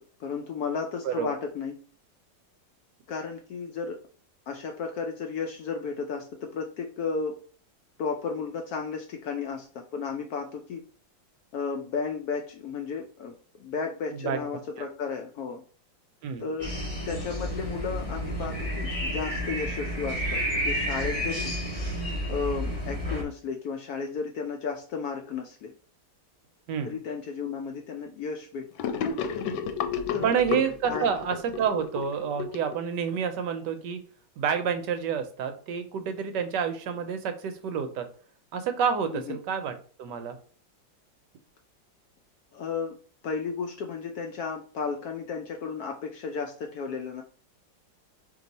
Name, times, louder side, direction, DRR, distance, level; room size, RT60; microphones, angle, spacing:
voice 1, 0.2-1.8 3.1-4.0 4.5-7.4 8.0-10.8 11.5-15.6 16.4-16.7 17.1-21.5 22.3-25.7 26.8-28.7 30.1-30.4 30.9-31.1 39.1-39.4 42.5-42.9 43.2-47.2, left 5 dB, 70° left, 3 dB, 0.9 m, -33 dB
sound 1, 16.6-23.2, equal, 20° left, 1.3 m, -31 dB
Gurgling / Sink (filling or washing), 28.8-33.3, left 6 dB, 90° left, 1.4 m, -32 dB
voice 2, 30.2-34.0 34.4-38.1 38.5-39.7 40.0-40.4, right 7 dB, 75° right, 8 dB, 1.1 m, -28 dB
4.6 x 2.9 x 4.0 m, 0.42 s
omnidirectional pair, 2.0 m